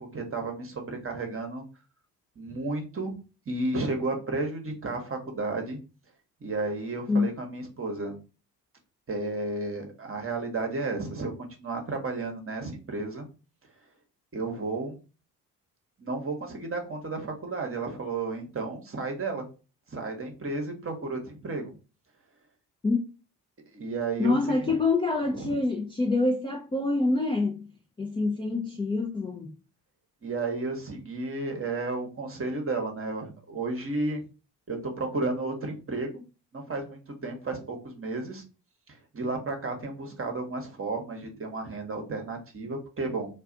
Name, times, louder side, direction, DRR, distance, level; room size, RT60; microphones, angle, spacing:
voice 1, 0.0-1.6 2.4-3.1 3.5-5.8 6.4-8.1 9.1-13.3 14.3-15.0 16.0-19.5 19.9-21.7 23.7-24.7 25.3-25.5 30.2-34.2 34.7-36.2 36.5-38.4 38.9-43.3, right 3 dB, 25° right, 1.0 m, -32 dB
voice 2, 24.2-27.7 28.0-29.5, left 3 dB, 10° left, 0.5 m, -26 dB
2.4 x 2.4 x 3.7 m
hypercardioid pair, 55°, 48 cm